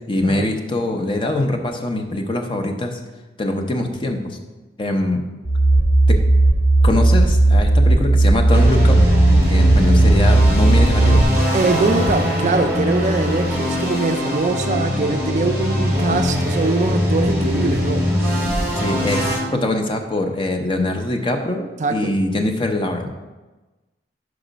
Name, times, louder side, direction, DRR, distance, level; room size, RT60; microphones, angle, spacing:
voice 1, 0.1-3.0 3.4-4.4 4.8-5.2 6.1-6.2 6.8-9.0 9.5-11.2 18.8-23.1, left 1 dB, 30° left, 4 dB, 0.6 m, -23 dB
sound 1, 5.5-11.2, right 2 dB, 85° left, 0.8 m, -14 dB
sound 2, 8.5-19.4, left 1 dB, 15° right, 1.7 m, -21 dB
voice 2, 11.5-18.1 21.8-22.1, right 3 dB, 45° right, 7 dB, 0.4 m, -22 dB
5.4 x 4.9 x 5.0 m, 1.2 s
head